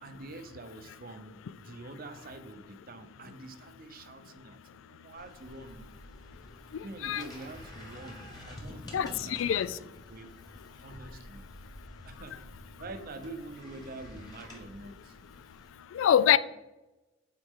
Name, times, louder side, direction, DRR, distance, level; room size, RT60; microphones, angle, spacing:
voice 1, 0.0-5.9 6.8-10.3 10.8-11.4 12.0-12.4 12.8-15.2 16.3-16.4, right 2 dB, 50° right, 0.7 m, -46 dB
sound 1, 5.2-15.7, equal, 20° left, 1.7 m, -49 dB
voice 2, 6.7-7.2 8.9-9.8 15.9-16.4, left 9 dB, 80° left, 0.3 m, -25 dB
8.2 x 4.5 x 3.6 m
head